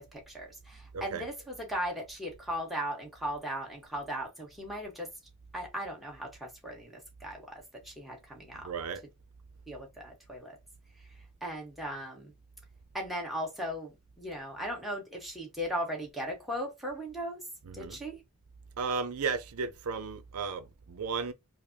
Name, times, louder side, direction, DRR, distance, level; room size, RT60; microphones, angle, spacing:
voice 1, 0.0-5.1 5.5-6.9 7.2-8.7 9.7-10.6 11.4-12.3 12.9-17.4 17.7-18.2, equal, ahead, 1.2 m, -37 dB
voice 2, 0.9-1.3 8.5-9.0 17.6-18.0 18.8-21.3, right 5 dB, 85° right, 0.5 m, -34 dB
4.9 x 2.0 x 2.7 m
head